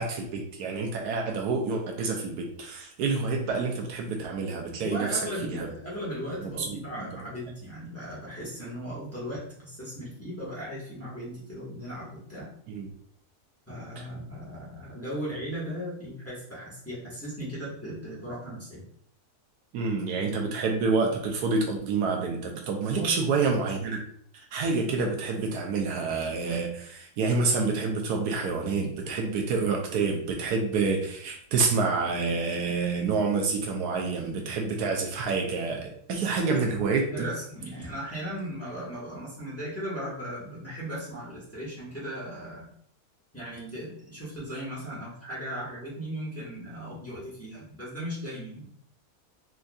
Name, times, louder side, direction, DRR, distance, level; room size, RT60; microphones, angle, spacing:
voice 1, 0.0-5.2 5.5-5.7 6.6-6.8 12.7-12.9 19.7-24.0 24.3-37.1, right 4 dB, 80° right, 2 dB, 1.1 m, -28 dB
voice 2, 4.7-12.5 13.7-18.8 22.9-23.1 36.4-36.6 37.1-42.7 43.3-48.7, equal, 10° left, -8 dB, 1.2 m, -37 dB
4.4 x 2.6 x 2.3 m, 0.64 s
omnidirectional pair, 1.7 m